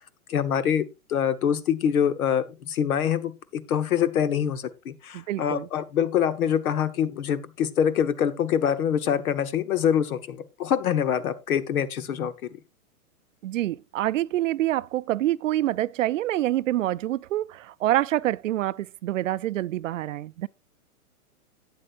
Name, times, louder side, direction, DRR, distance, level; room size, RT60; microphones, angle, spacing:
voice 1, 0.3-12.3, left 8 dB, 75° left, 1.2 m, -25 dB
voice 2, 5.1-5.7 13.4-20.5, right 14 dB, 60° right, 0.5 m, -26 dB
12.0 x 8.8 x 2.5 m
hypercardioid pair, 155°, 44 cm